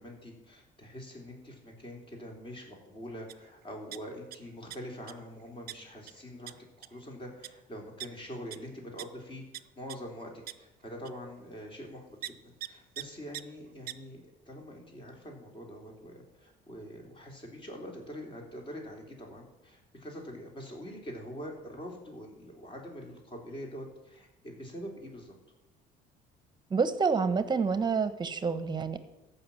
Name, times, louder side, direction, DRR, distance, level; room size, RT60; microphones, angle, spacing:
voice 1, 0.0-9.4 9.8-12.4 12.7-25.3, equal, 30° left, 1 dB, 3.5 m, -44 dB
sound 1, 3.3-3.4 3.7-4.4 4.7-5.1 5.7-5.8 6.1-6.2 6.5-6.6 6.8-7.0 7.4-7.5 8.0-8.1 8.5-8.6 9.0-9.1 9.5-9.6 9.9-10.0 10.5-10.6 11.0-11.1 12.2-12.3 12.6-12.7 13.0-13.1 13.3-13.4 13.9-14.0, right 14 dB, 65° right, 0.6 m, -39 dB
voice 2, 26.7-29.0, right 5 dB, 25° right, 12 dB, 1.0 m, -28 dB
14.5 x 5.8 x 7.1 m, 0.99 s
cardioid pair, 110°, 17 cm